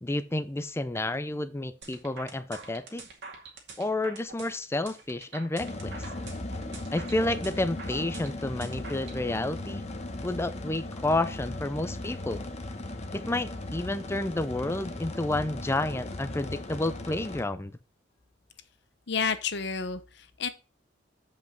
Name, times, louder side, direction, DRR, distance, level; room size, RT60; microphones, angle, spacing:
voice 1, 0.0-3.0 3.8-6.1 6.9-9.9 10.2-12.5 13.1-17.7, left 2 dB, 15° left, 0.5 m, -30 dB
sound 1, 1.8-9.2, right 4 dB, 65° right, 2.3 m, -45 dB
sound 2, 5.6-17.4, left 2 dB, 35° left, 1.1 m, -37 dB
voice 2, 19.1-20.5, left 6 dB, 65° left, 0.9 m, -30 dB
7.8 x 5.4 x 5.1 m
head